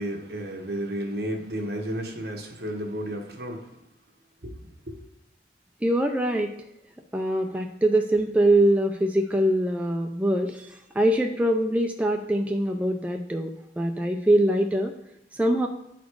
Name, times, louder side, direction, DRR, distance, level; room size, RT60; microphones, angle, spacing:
voice 1, 0.0-3.7 4.4-5.0, equal, 65° right, 2 dB, 1.3 m, -32 dB
voice 2, 5.8-6.5 7.1-13.5 13.8-14.9 15.3-15.7, right 1 dB, 10° right, 3 dB, 0.4 m, -23 dB
9.5 x 4.2 x 4.7 m, 0.83 s
head